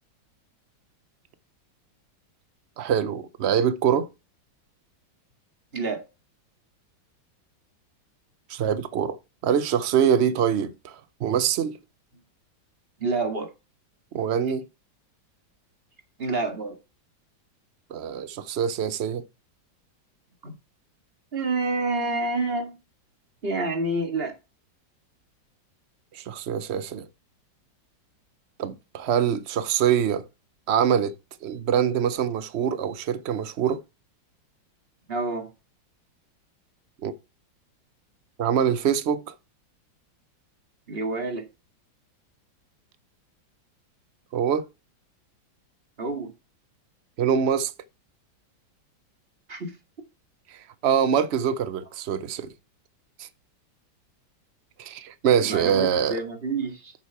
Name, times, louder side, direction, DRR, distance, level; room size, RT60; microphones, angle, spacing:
voice 1, 2.8-4.1 8.5-9.2 9.4-11.8 14.1-14.6 17.9-19.2 26.1-27.1 28.6-30.3 30.7-31.1 31.4-33.8 37.0-37.1 38.4-39.3 44.3-44.6 47.2-47.7 50.5-52.5 53.2-53.3 54.8-56.2, right 8 dB, 85° right, 0.5 m, -24 dB
voice 2, 5.7-6.1 13.0-13.5 16.2-16.8 20.4-20.5 21.3-22.8 23.4-24.4 35.1-35.5 40.9-41.5 46.0-46.3 49.5-49.8 55.4-56.9, right 3 dB, 30° right, 2.0 m, -28 dB
8.4 x 7.3 x 4.6 m
omnidirectional pair, 2.1 m